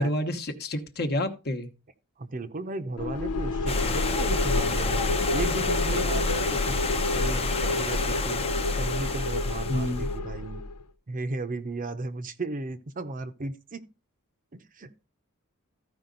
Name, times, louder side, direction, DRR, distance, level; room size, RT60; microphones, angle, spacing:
voice 1, 0.0-1.7 9.7-10.1, left 1 dB, 45° left, 1.1 m, -29 dB
voice 2, 2.2-5.1 5.3-6.9 7.1-8.4 8.8-10.6 11.1-13.9 14.5-15.0, right 3 dB, 40° right, 0.7 m, -35 dB
sound 1, 3.0-10.7, left 2 dB, 85° left, 0.7 m, -28 dB
Stream, 3.7-10.1, left 4 dB, 25° left, 0.7 m, -32 dB
14.0 x 5.0 x 3.9 m
head